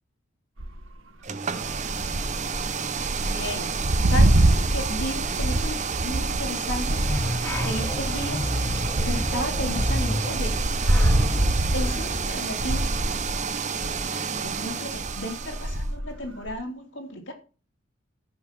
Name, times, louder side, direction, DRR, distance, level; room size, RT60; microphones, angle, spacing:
sound 1, 0.6-0.9 1.6-14.0 14.3-14.6 14.9-16.5, right 1 dB, 80° right, 1.7 m, -25 dB
sound 2, 1.2-15.9, right 6 dB, 35° right, 0.8 m, -31 dB
voice 1, 3.2-3.7 4.1-7.1 7.6-8.5 9.0-10.6 11.7-13.0 14.1-17.3, left 1 dB, 60° left, 3.2 m, -34 dB
sound 3, 6.9-13.1, equal, 10° left, 1.4 m, -30 dB
14.0 x 5.4 x 6.0 m
head